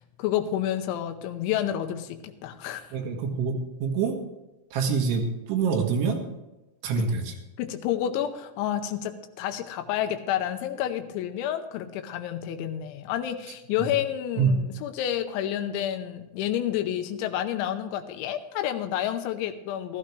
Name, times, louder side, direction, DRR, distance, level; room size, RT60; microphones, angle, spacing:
voice 1, 0.2-2.9 7.0-7.1 7.6-20.0, left 11 dB, 90° left, 7 dB, 3.1 m, -29 dB
voice 2, 2.9-4.2 4.7-6.2 6.8-7.3 13.8-13.9 14.4-14.5, right 5 dB, 85° right, 2 dB, 4.1 m, -26 dB
15.5 x 13.5 x 3.3 m, 1.0 s
omnidirectional pair, 5.4 m